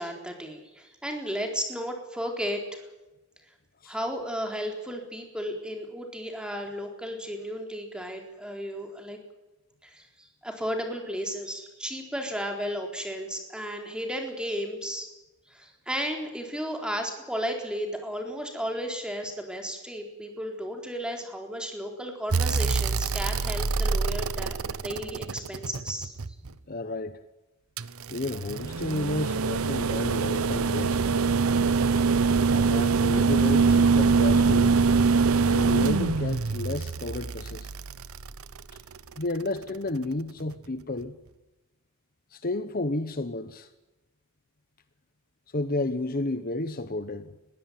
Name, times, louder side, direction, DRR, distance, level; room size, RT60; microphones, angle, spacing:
voice 1, 0.0-2.9 3.9-9.2 9.8-15.1 15.5-26.1, equal, 5° right, 4.1 m, -34 dB
sound 1, 22.3-26.5 27.8-39.0 40.5-40.6, right 4 dB, 90° right, 0.9 m, -24 dB
voice 2, 26.7-27.2 28.1-31.0 32.5-34.8 35.5-37.7 39.2-41.1 42.3-43.7 45.5-47.3, left 2 dB, 45° left, 1.0 m, -32 dB
21.5 x 16.5 x 9.4 m
head